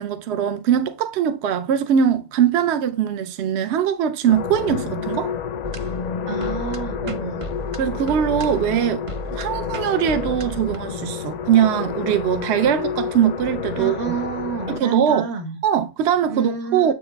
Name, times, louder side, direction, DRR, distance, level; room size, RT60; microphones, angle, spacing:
voice 1, 0.0-5.3 7.1-7.2 7.8-9.1 9.3-14.2 14.7-15.3 15.6-16.9, right 9 dB, 70° right, 0.8 m, -21 dB
sound 1, 4.3-14.8, left 7 dB, 65° left, 0.4 m, -29 dB
sound 2, 5.6-10.8, right 1 dB, 40° right, 0.5 m, -35 dB
voice 2, 6.3-7.5 13.8-15.6 16.3-16.9, right 5 dB, 85° right, 1.6 m, -29 dB
7.8 x 6.4 x 2.2 m
omnidirectional pair, 1.2 m